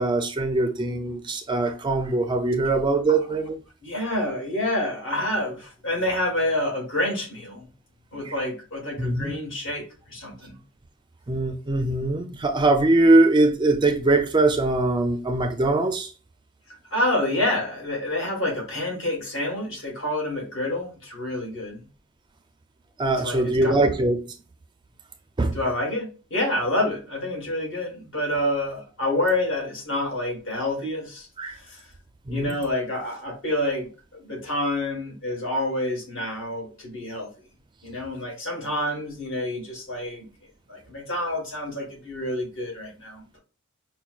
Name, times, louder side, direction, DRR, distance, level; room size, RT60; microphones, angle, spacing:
voice 1, 0.0-3.6 8.2-8.3 9.0-9.3 11.3-16.1 23.0-24.2 25.4-25.6 31.4-31.6 32.3-32.6, right 2 dB, 20° right, 0.4 m, -22 dB
voice 2, 3.8-7.7 8.1-10.6 16.9-21.9 23.2-23.7 25.5-31.8 32.3-37.3 37.8-40.3 40.7-43.4, left 1 dB, 65° left, 1.6 m, -28 dB
5.5 x 2.2 x 2.4 m
head